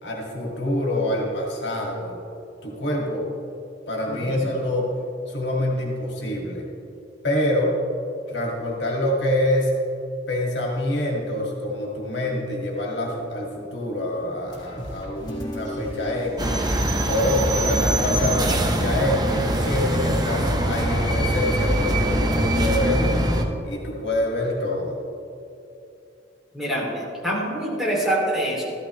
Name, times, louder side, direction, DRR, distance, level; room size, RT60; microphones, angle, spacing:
voice 1, 0.0-2.2 2.6-3.3 3.9-4.9 5.3-6.6 7.2-7.8 8.3-9.8 10.3-16.6 17.0-23.2 23.6-25.0, left 1 dB, 70° left, -2 dB, 2.1 m, -26 dB
voice 2, 4.1-4.5 26.5-28.6, right 1 dB, ahead, -5 dB, 2.7 m, -25 dB
sound 1, 14.5-20.1, equal, 25° left, 2.0 m, -38 dB
sound 2, 16.4-23.4, right 1 dB, 20° right, 0.8 m, -23 dB
14.0 x 12.5 x 3.2 m, 2.7 s
head